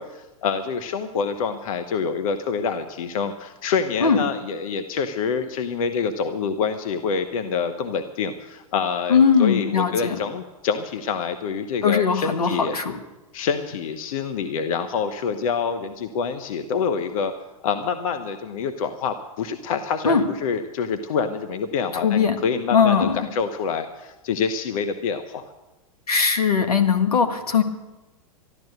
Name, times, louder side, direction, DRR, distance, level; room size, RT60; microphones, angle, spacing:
voice 1, 0.0-12.8 13.3-17.3 17.6-25.5, left 6 dB, 65° left, 8 dB, 1.1 m, -26 dB
voice 2, 9.1-10.2 11.8-13.0 20.0-20.2 21.9-22.4 22.7-23.3 26.1-27.6, left 6 dB, 90° left, 7 dB, 1.7 m, -19 dB
13.0 x 12.0 x 8.0 m, 1.1 s
hypercardioid pair, 110°, 19 cm